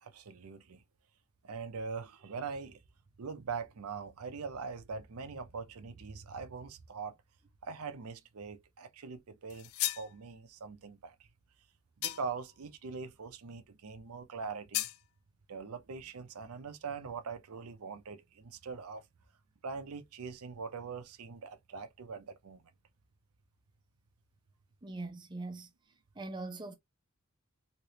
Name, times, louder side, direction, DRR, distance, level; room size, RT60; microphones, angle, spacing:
voice 1, 0.0-0.8 1.4-2.8 3.2-7.2 7.6-9.7 10.0-11.3 12.0-14.9 15.5-19.1 19.6-22.7, right 5 dB, 80° right, 0.6 m, -42 dB
sound 1, 9.5-10.1 12.0-12.5 14.7-15.0, left 15 dB, 65° left, 0.3 m, -35 dB
voice 2, 24.8-25.7 26.2-26.7, right 2 dB, 20° right, 0.6 m, -41 dB
3.3 x 2.9 x 2.8 m
head